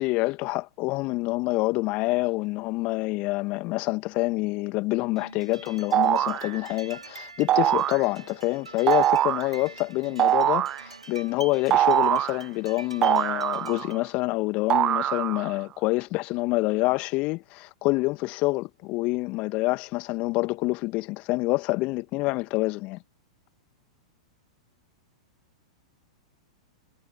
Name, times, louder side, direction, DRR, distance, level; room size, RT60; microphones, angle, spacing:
voice 1, 0.0-23.0, left 23 dB, 40° left, 1.7 m, -27 dB
sound 1, 5.2-14.0, right 4 dB, 80° right, 3.7 m, -45 dB
sound 2, 5.9-6.5 7.5-8.0 8.9-9.5 10.2-10.8 11.7-12.4 13.0-14.0 14.7-15.5, right 12 dB, 30° right, 0.7 m, -23 dB
figure-of-eight pair, 100°, 3 cm